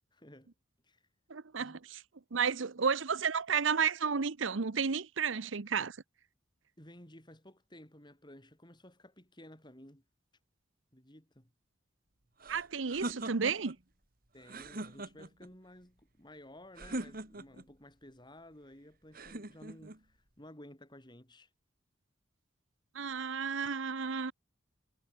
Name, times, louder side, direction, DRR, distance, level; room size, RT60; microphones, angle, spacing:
voice 1, 0.1-0.5 0.8-1.1 1.6-1.8 6.8-10.0 10.9-11.5 14.3-21.5, left 1 dB, 25° left, 6.8 m, -54 dB
voice 2, 1.3-2.0 2.3-6.0 12.5-13.8 22.9-24.3, right 6 dB, 80° right, 0.9 m, -32 dB
sound 1, 12.4-13.8 14.4-15.5 16.8-17.7 19.1-20.0, right 2 dB, 50° right, 3.0 m, -41 dB
head